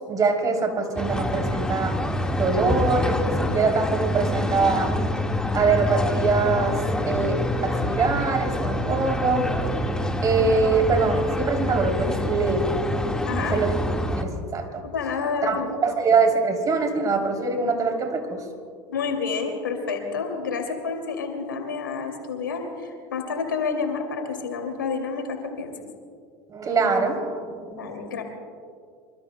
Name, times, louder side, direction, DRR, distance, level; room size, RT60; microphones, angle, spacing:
voice 1, 0.1-2.0 2.4-5.0 5.5-9.5 10.2-12.8 13.4-13.7 14.1-14.7 15.4-18.4 26.5-28.0, right 4 dB, 35° right, 4 dB, 3.1 m, -23 dB
sound 1, 1.0-14.2, left 1 dB, 5° left, 1.6 m, -26 dB
voice 2, 13.3-13.6 14.8-15.9 18.9-25.7 27.8-28.2, left 5 dB, 90° left, 3 dB, 2.4 m, -29 dB
26.0 x 24.5 x 2.2 m, 2.2 s
hypercardioid pair, 80°, 11 cm